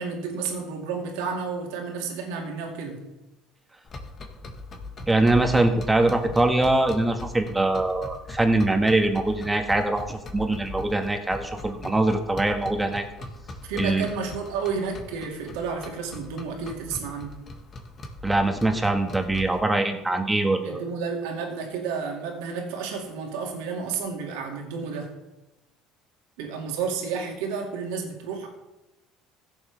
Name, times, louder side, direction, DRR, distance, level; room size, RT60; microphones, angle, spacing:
voice 1, 0.0-3.0 13.7-17.4 20.6-25.1 26.4-28.5, right 5 dB, 80° right, 1 dB, 2.5 m, -31 dB
sound 1, 3.9-19.6, left 2 dB, 40° left, 2.1 m, -40 dB
voice 2, 5.1-13.0 13.8-14.0 18.2-20.8, right 2 dB, 15° right, 4 dB, 1.8 m, -23 dB
16.0 x 7.2 x 3.6 m, 0.98 s
supercardioid pair, 80°, 0 cm